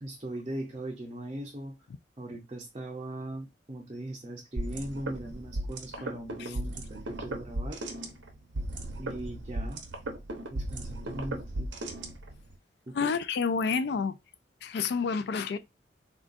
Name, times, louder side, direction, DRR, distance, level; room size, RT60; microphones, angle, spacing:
voice 1, 0.0-1.8 2.2-7.8 9.0-9.8 10.5-11.8 12.9-13.1, right 1 dB, 30° right, 0.5 m, -39 dB
sound 1, 4.6-12.5, right 1 dB, 85° right, 0.8 m, -36 dB
voice 2, 12.9-14.2 14.6-15.6, left 5 dB, 60° left, 0.3 m, -29 dB
3.7 x 2.3 x 2.5 m
head